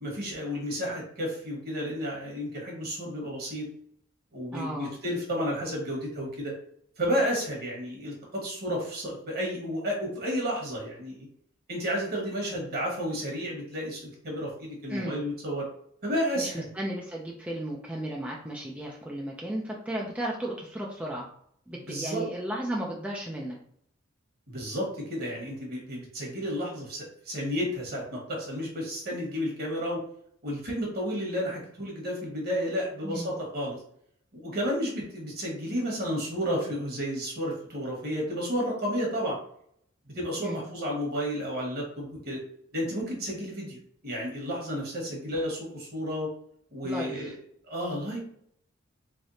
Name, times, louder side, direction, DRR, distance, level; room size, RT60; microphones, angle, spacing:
voice 1, 0.0-3.6 4.3-6.5 7.0-11.3 11.7-15.7 16.0-16.7 21.7-22.2 24.5-30.0 30.4-33.8 34.3-39.4 40.1-42.4 42.7-43.8 44.0-46.3 46.7-47.3 47.7-48.2, equal, 50° right, -1 dB, 1.4 m, -32 dB
voice 2, 4.5-4.9 14.9-15.2 16.4-21.3 21.7-23.6 33.0-33.3 40.4-40.6 46.8-47.3, right 1 dB, 5° right, -2 dB, 0.4 m, -34 dB
3.6 x 3.4 x 2.7 m, 0.67 s
head